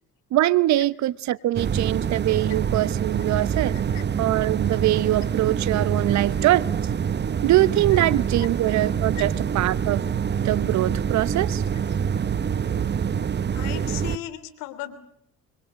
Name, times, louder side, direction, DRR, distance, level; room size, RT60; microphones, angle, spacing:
voice 1, 0.3-3.9 4.2-6.7 7.4-10.0 10.4-11.6, right 15 dB, 55° right, 1.0 m, -23 dB
sound 1, 1.6-14.2, right 7 dB, 30° right, 1.0 m, -26 dB
voice 2, 3.7-4.0 7.9-8.0 8.4-8.5 9.1-9.2 13.5-14.9, left 15 dB, 75° left, 3.2 m, -36 dB
25.5 x 23.0 x 8.2 m
hypercardioid pair, 65°, 33 cm